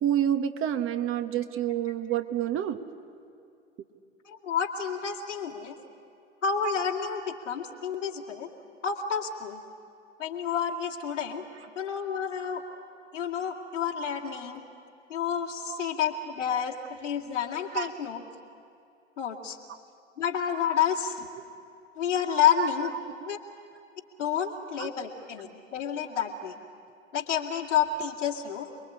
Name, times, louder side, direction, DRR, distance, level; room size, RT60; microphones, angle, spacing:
voice 1, 0.0-2.8 15.6-15.8 17.7-17.9 22.6-22.7 23.0-23.3 24.8-24.9, right 10 dB, 35° right, 9 dB, 1.3 m, -28 dB
voice 2, 4.2-5.8 6.4-8.5 8.8-9.6 10.2-11.4 11.8-12.6 13.1-14.6 15.1-18.2 19.2-19.6 20.2-21.3 22.0-22.9 23.3-23.4 24.2-26.5 27.1-28.7, left 7 dB, 80° left, 0 dB, 2.4 m, -29 dB
28.5 x 21.5 x 8.7 m, 2.6 s
figure-of-eight pair, 85°, 36 cm